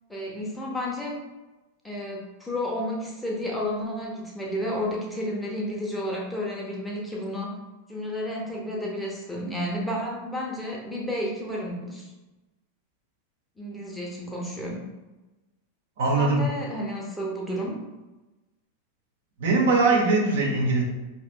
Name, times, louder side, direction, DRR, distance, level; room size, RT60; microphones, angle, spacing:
voice 1, 0.1-1.2 1.8-7.6 7.9-12.1 13.6-14.9 16.1-17.8, equal, 5° left, -3 dB, 0.8 m, -31 dB
voice 2, 16.0-16.4 19.4-20.8, right 3 dB, 55° right, -1 dB, 0.8 m, -21 dB
4.9 x 2.8 x 2.2 m, 1.1 s
figure-of-eight pair, 90°, 0 cm